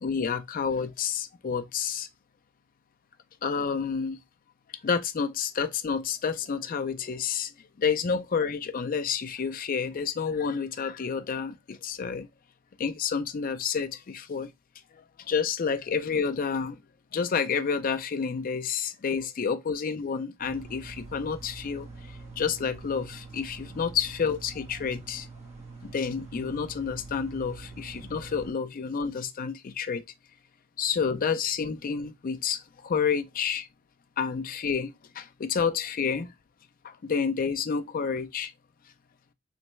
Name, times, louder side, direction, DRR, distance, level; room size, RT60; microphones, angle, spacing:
voice 1, 0.0-2.1 3.4-4.2 4.8-7.5 7.8-12.3 12.8-14.5 15.3-16.8 17.1-21.9 22.4-25.3 25.8-30.0 30.8-33.7 34.2-36.3 36.8-38.5, left 6 dB, 40° left, 0.4 m, -29 dB
sound 1, 20.4-28.5, right 3 dB, 35° right, 1.2 m, -44 dB
3.3 x 3.2 x 3.1 m
head